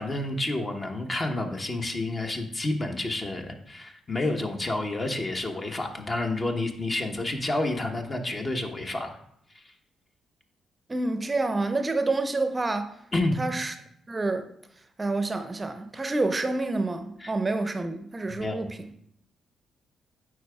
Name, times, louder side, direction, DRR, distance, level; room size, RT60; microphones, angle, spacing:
voice 1, 0.0-9.1 9.5-9.6 13.1-13.3 17.2-17.3 18.3-18.7, left 2 dB, 35° left, 1.0 m, -29 dB
voice 2, 10.9-12.9 13.4-13.7 14.1-14.5 15.0-18.9, right 2 dB, 30° right, 0.6 m, -28 dB
9.1 x 4.8 x 2.3 m
hypercardioid pair, 40°, 0 cm